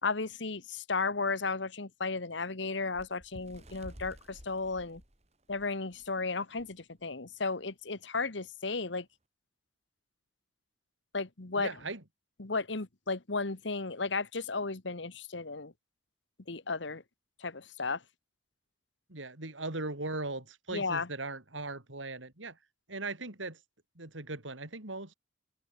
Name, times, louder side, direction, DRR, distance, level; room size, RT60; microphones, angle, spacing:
voice 1, 0.0-5.0 5.5-9.0 11.1-11.7 12.4-15.7 16.5-17.0 17.4-18.0 20.7-21.1, left 4 dB, 75° left, 1.5 m, -34 dB
Bird, 2.9-6.1 6.6-6.7 7.0-7.3 8.1-8.2, equal, 35° right, 4.5 m, -52 dB
voice 2, 11.6-12.0 19.1-22.6 22.9-23.6 24.0-25.1, right 2 dB, 90° right, 4.2 m, -39 dB
head